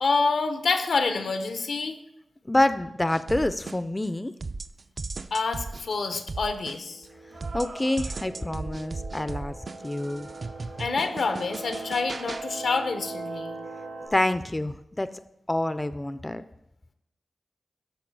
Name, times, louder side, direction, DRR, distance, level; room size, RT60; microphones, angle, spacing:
voice 1, 0.0-2.0 5.3-7.0 10.8-13.6, left 4 dB, 85° left, 8 dB, 0.8 m, -27 dB
voice 2, 2.5-4.3 7.5-9.6 9.8-10.3 14.1-15.1 15.5-16.4, left 1 dB, 20° left, 12 dB, 0.4 m, -27 dB
sound 1, 3.1-4.1 4.4-7.1 7.4-12.5, right 3 dB, 50° right, 0.4 m, -37 dB
sound 2, 4.1-4.2 7.3-8.5 9.7-12.3, right 2 dB, 70° right, 1.7 m, -48 dB
sound 3, 5.8-5.9 6.7-14.1, right 3 dB, 90° right, 3.1 m, -41 dB
13.0 x 4.8 x 4.7 m, 0.86 s
cardioid pair, 60°, 0 cm